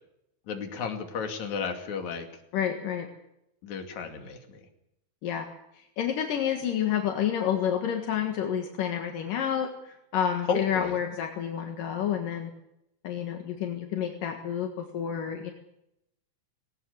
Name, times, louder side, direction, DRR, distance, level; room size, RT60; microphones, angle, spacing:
voice 1, 0.5-2.3 3.6-4.6 10.5-11.0, left 6 dB, 60° left, 4 dB, 3.8 m, -33 dB
voice 2, 2.5-3.1 5.2-5.5 5.7-12.5 13.0-15.5, left 9 dB, 75° left, 4 dB, 3.3 m, -29 dB
19.5 x 18.5 x 8.1 m, 0.83 s
omnidirectional pair, 3.9 m